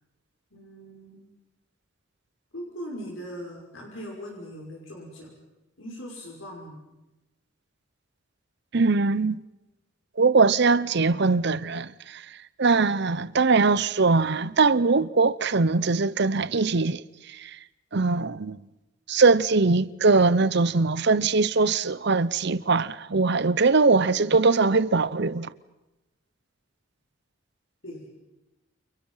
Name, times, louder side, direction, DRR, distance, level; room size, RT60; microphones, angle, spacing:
voice 1, 0.5-1.2 2.5-5.3 5.8-6.8 27.8-28.1, equal, 75° left, 6.0 m, -40 dB
voice 2, 8.7-9.4 10.2-12.2 12.6-17.0 17.3-17.6 17.9-18.6 19.1-25.5, right 4 dB, 55° right, 0.8 m, -21 dB
29.5 x 28.5 x 5.7 m
head